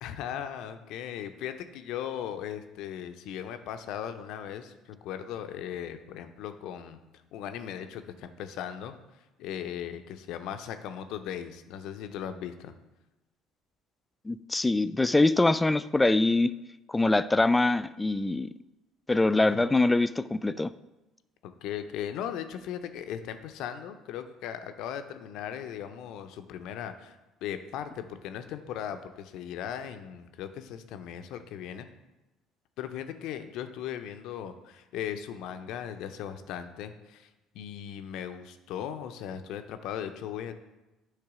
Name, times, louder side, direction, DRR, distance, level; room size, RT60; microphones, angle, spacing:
voice 1, 0.0-7.0 7.3-8.9 9.4-12.7 19.3-19.7 21.4-31.9 32.8-37.3 37.5-40.5, left 9 dB, 65° left, 9 dB, 0.5 m, -38 dB
voice 2, 14.3-16.5 16.9-18.5 19.1-20.7, left 2 dB, 15° left, 15 dB, 0.3 m, -24 dB
8.7 x 3.3 x 4.9 m, 1.0 s
hypercardioid pair, 60°, 0 cm